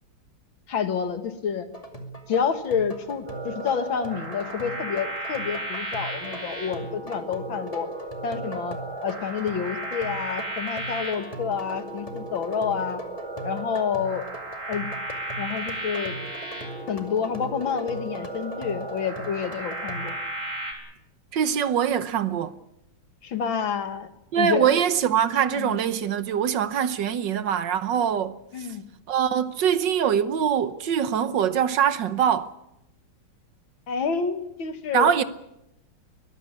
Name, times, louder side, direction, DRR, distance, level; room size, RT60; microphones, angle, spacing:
voice 1, 0.7-1.7 2.3-7.9 8.2-8.8 9.0-13.0 13.4-14.3 14.7-14.9 15.4-16.2 16.9-20.2 23.2-24.1 24.4-24.8 25.6-25.8 28.5-28.8 33.9-35.2, left 7 dB, 75° left, 2.4 m, -28 dB
sound 1, 1.7-20.1, right 2 dB, 15° left, 2.3 m, -41 dB
sound 2, 3.3-20.7, right 1 dB, 80° right, 4.8 m, -35 dB
voice 2, 21.3-22.5 24.3-28.7 29.1-32.5 34.9-35.2, right 8 dB, 65° right, 1.6 m, -23 dB
22.5 x 15.0 x 9.7 m
omnidirectional pair, 2.2 m